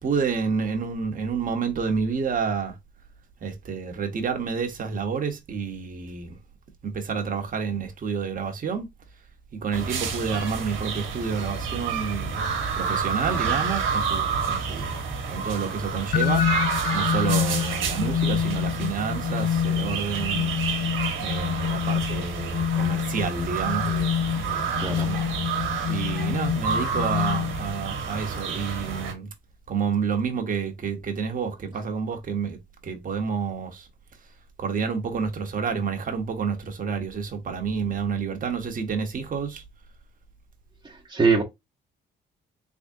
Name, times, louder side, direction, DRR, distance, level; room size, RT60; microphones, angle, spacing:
voice 1, 0.0-2.7 3.4-6.4 6.8-8.9 9.6-12.4 12.7-14.9 15.3-16.4 16.9-20.6 21.2-25.3 25.9-29.3 29.7-32.6 32.8-33.9 34.6-39.6, right 5 dB, 45° right, 1.0 m, -29 dB
sound 1, 9.7-29.1, right 5 dB, 80° right, 1.2 m, -29 dB
sound 2, 16.1-27.9, left 9 dB, 50° left, 0.4 m, -27 dB
voice 2, 24.8-25.1 41.1-41.4, right 4 dB, 20° right, 0.9 m, -22 dB
3.5 x 3.4 x 2.7 m
cardioid pair, 90°, 20 cm